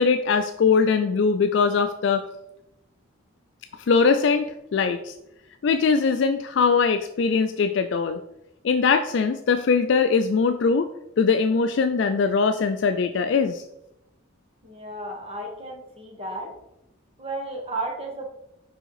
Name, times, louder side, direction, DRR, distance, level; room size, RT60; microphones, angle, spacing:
voice 1, 0.0-2.3 3.9-5.1 5.6-8.2 8.6-10.9 11.2-13.6, left 5 dB, 65° left, 8 dB, 0.3 m, -21 dB
voice 2, 14.6-16.5 17.2-18.3, right 2 dB, 30° right, 0 dB, 1.5 m, -33 dB
5.2 x 4.8 x 4.7 m, 0.85 s
head